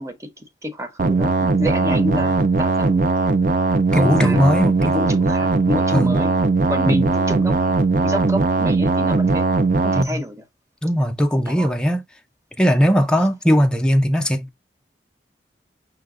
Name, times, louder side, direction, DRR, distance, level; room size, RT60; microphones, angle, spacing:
voice 1, 0.0-3.1 3.9-6.4 6.7-9.5 9.8-10.4 11.4-11.7, equal, 15° right, 0.8 m, -29 dB
sound 1, 1.0-10.0, right 3 dB, 50° right, 0.5 m, -19 dB
voice 2, 3.9-4.8 5.9-6.1 6.8-7.1 9.9-10.2 10.8-12.0 12.6-14.6, equal, 5° left, 0.5 m, -18 dB
5.8 x 2.2 x 3.7 m
head